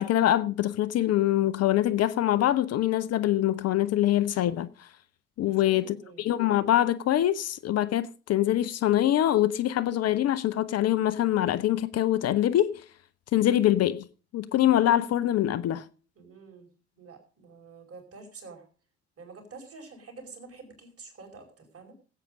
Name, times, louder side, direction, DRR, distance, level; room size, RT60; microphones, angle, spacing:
voice 1, 0.0-4.7 5.4-12.8 13.3-14.0 14.3-15.8, left 12 dB, 45° left, 0.7 m, -24 dB
voice 2, 5.4-6.3 16.1-16.7 16.9-18.7 19.2-21.9, right 4 dB, 40° right, 5.0 m, -48 dB
17.0 x 8.4 x 5.2 m
figure-of-eight pair, 50°, 34 cm